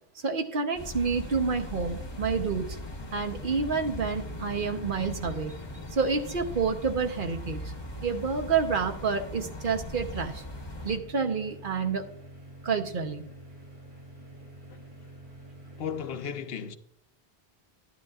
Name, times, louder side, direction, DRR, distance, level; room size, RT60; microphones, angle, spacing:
voice 1, 0.2-2.7 3.1-5.5 5.9-7.6 8.0-10.4 10.8-12.1 12.6-13.2, right 5 dB, 55° right, 1.0 m, -29 dB
sound 1, 0.7-11.0, left 1 dB, 25° left, 0.9 m, -40 dB
sound 2, 1.4-16.2, right 1 dB, 85° right, 5.2 m, -49 dB
voice 2, 15.8-16.8, left 7 dB, 70° left, 0.8 m, -35 dB
11.5 x 10.5 x 2.4 m
omnidirectional pair, 1.1 m